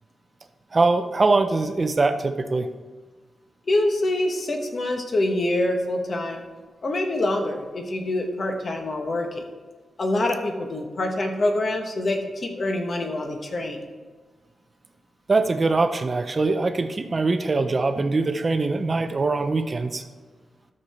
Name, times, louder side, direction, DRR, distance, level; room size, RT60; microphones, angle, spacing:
voice 1, 0.7-2.7 15.3-20.0, right 3 dB, 30° right, 8 dB, 0.6 m, -22 dB
voice 2, 3.7-6.4 6.8-9.4 10.0-13.8, left 1 dB, 40° left, 3 dB, 1.1 m, -25 dB
12.5 x 6.6 x 4.3 m, 1.4 s
wide cardioid pair, 170°, 0 cm